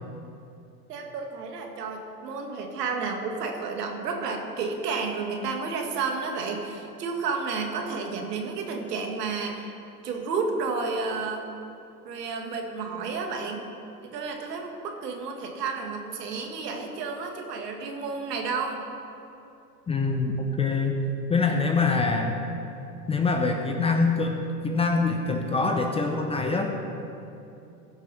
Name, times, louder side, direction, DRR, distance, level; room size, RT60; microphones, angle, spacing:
voice 1, 0.9-9.8 10.0-11.5 12.0-13.7 14.0-18.9, right 4 dB, 70° right, 2 dB, 2.0 m, -31 dB
voice 2, 19.9-21.0 21.3-22.4 23.1-26.7, left 4 dB, 10° left, 3 dB, 0.7 m, -24 dB
16.5 x 6.1 x 5.7 m, 2.8 s
hypercardioid pair, 105°, 49 cm